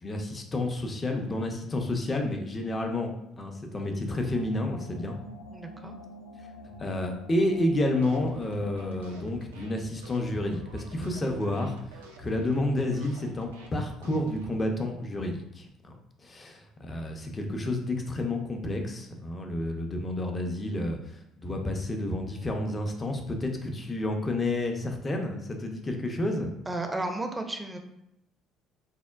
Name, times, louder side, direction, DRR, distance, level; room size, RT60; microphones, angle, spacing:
voice 1, 0.0-5.2 6.8-11.7 12.2-16.0 16.2-21.0 21.4-26.5, left 1 dB, 30° left, 3 dB, 0.5 m, -30 dB
sound 1, 4.1-9.3, left 1 dB, 80° left, 0.3 m, -47 dB
voice 2, 5.5-6.0 26.7-27.8, right 2 dB, 15° right, 4 dB, 0.5 m, -33 dB
sound 2, 7.9-14.5, right 3 dB, 90° right, 0.3 m, -49 dB
3.5 x 2.1 x 2.3 m, 0.82 s
hypercardioid pair, 55°, 0 cm